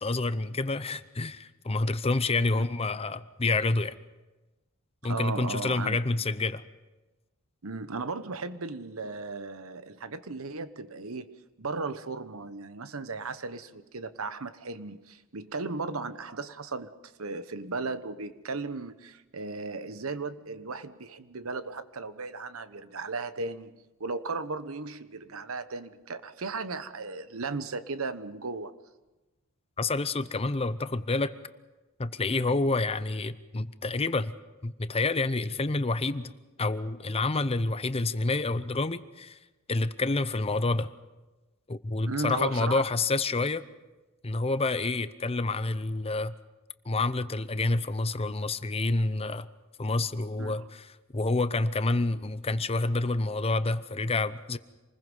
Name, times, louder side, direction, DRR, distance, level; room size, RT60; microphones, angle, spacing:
voice 1, 0.0-4.0 5.0-6.6 29.8-31.3 32.0-34.3 34.6-36.3 36.6-39.4 39.7-40.9 41.7-43.6 44.2-46.3 46.9-49.5 49.8-54.6, left 3 dB, 30° left, 13 dB, 0.7 m, -28 dB
voice 2, 5.0-6.0 7.6-11.3 11.6-16.9 17.2-28.8 32.3-32.5 42.0-42.8 50.4-50.6, right 3 dB, 75° right, 12 dB, 1.1 m, -36 dB
27.5 x 20.5 x 5.5 m, 1.1 s
head